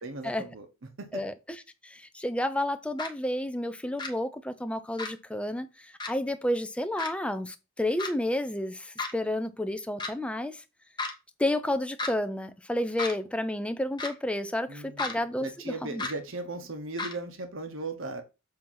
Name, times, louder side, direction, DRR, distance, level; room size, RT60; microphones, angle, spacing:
voice 1, 0.0-0.7 1.0-1.1 14.7-15.1 15.4-18.2, right 2 dB, 70° right, 1.0 m, -37 dB
voice 2, 1.1-10.6 11.4-16.0, left 1 dB, 5° left, 0.5 m, -31 dB
sound 1, 3.0-3.1 4.0-4.1 5.0-5.1 6.0-6.1 7.0-7.1 8.0-8.1 9.0-9.1 10.0-10.1 11.0-11.1 12.0-12.1 13.0-13.1 14.0-14.1 15.0-15.1 16.0-16.1 17.0-17.1, left 3 dB, 20° left, 1.0 m, -32 dB
7.6 x 2.9 x 5.6 m
head